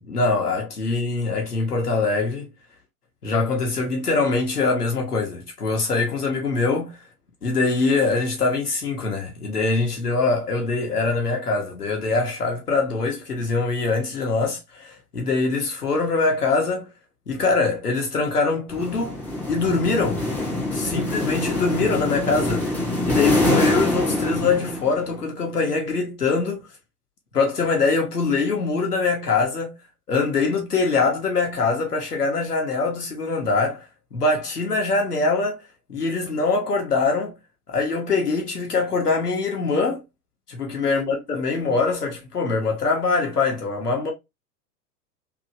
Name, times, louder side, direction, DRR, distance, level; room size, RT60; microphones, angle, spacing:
voice 1, 0.1-2.5 3.2-7.0 7.4-16.9 17.3-19.2 19.5-20.2 20.7-22.7 23.0-26.7 27.3-29.7 30.1-33.8 34.1-35.6 35.9-37.3 37.7-40.0 40.6-44.1, left 3 dB, 85° left, 0.9 m, -23 dB
sound 1, 18.7-25.2, left 1 dB, 5° left, 0.4 m, -25 dB
2.9 x 2.6 x 2.5 m
figure-of-eight pair, 90°, 46 cm